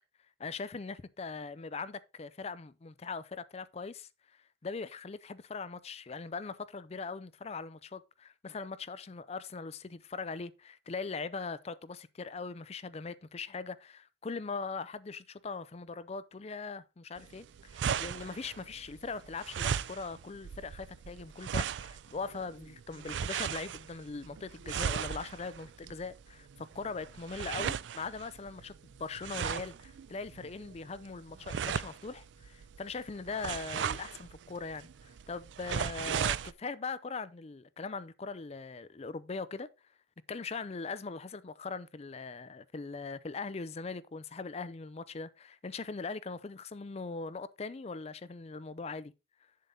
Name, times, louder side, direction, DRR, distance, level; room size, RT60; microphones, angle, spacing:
voice 1, 0.4-4.1 4.6-28.7 29.0-39.7 40.3-49.1, left 4 dB, 35° left, 0.5 m, -41 dB
sound 1, 17.2-36.5, right 8 dB, 80° right, 0.4 m, -37 dB
7.5 x 6.9 x 3.8 m
head